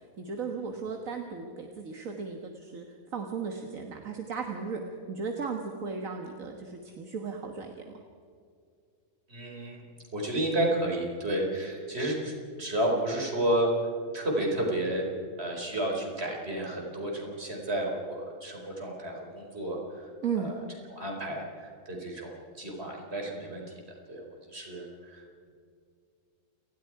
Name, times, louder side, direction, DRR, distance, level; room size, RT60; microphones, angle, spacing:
voice 1, 0.2-4.8 5.1-8.0 20.2-20.5, right 5 dB, 70° right, 3 dB, 1.9 m, -36 dB
voice 2, 9.3-9.8 10.1-12.3 12.6-13.7 14.1-15.1 15.4-20.1 20.4-20.6 20.9-23.6 24.1-25.2, right 1 dB, 45° right, 0 dB, 4.9 m, -31 dB
30.0 x 20.0 x 4.8 m, 2.2 s
omnidirectional pair, 1.5 m